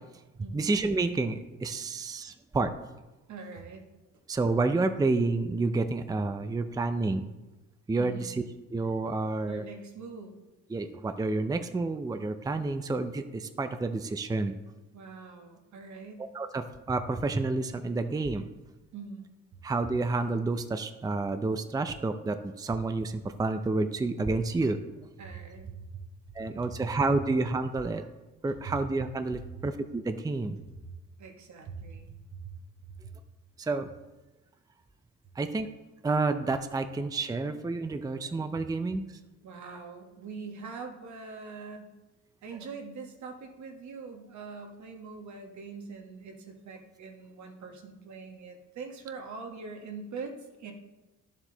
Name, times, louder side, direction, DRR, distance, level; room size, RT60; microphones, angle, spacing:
voice 1, 0.5-2.7 4.3-7.3 7.9-8.4 8.7-9.6 10.7-14.6 16.3-18.4 19.6-24.8 26.3-28.0 28.4-30.6 33.6-33.9 35.4-35.7 36.0-39.2, right 3 dB, 10° right, 9 dB, 0.5 m, -29 dB
voice 2, 3.3-3.8 8.0-8.4 9.5-10.4 14.9-16.2 18.9-19.2 25.2-26.0 26.6-26.7 28.6-28.7 30.8-30.9 31.2-32.5 39.4-41.9 42.4-50.7, right 4 dB, 70° right, 3 dB, 1.5 m, -43 dB
10.5 x 7.4 x 3.9 m, 1.1 s
cardioid pair, 90°, 30 cm